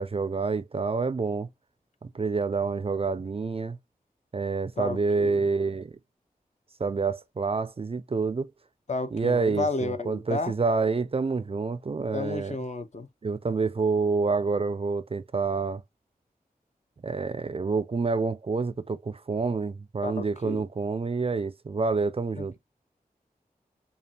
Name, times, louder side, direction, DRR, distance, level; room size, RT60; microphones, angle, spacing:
voice 1, 0.0-1.5 2.0-3.8 4.3-5.9 6.8-8.5 9.1-12.6 13.2-15.8 17.0-22.5, right 4 dB, 40° right, 0.4 m, -28 dB
voice 2, 4.8-5.4 8.9-10.5 12.1-13.1 20.0-20.6 22.4-22.6, left 3 dB, 45° left, 0.7 m, -32 dB
5.1 x 2.4 x 2.8 m
cardioid pair, 40°, 16 cm